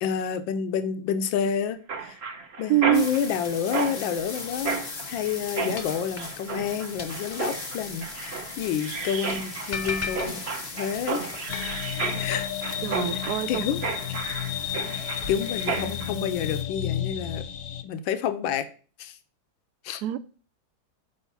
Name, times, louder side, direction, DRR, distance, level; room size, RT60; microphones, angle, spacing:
voice 1, 0.0-2.2 2.6-4.8 5.1-10.5 10.7-11.3 12.2-12.5 13.1-13.2 13.5-13.8 15.3-17.4 17.8-18.7 19.0-19.2 19.8-20.0, left 8 dB, 85° left, 1.5 m, -29 dB
Mechanisms, 1.9-16.1, right 4 dB, 40° right, 1.0 m, -33 dB
voice 2, 2.7-3.1 12.8-13.7 20.0-20.2, right 15 dB, 75° right, 0.9 m, -24 dB
sound 1, 2.9-16.6, left 4 dB, 40° left, 0.6 m, -38 dB
sound 2, 11.5-17.8, left 11 dB, 60° left, 1.0 m, -32 dB
7.1 x 5.1 x 5.5 m
omnidirectional pair, 2.0 m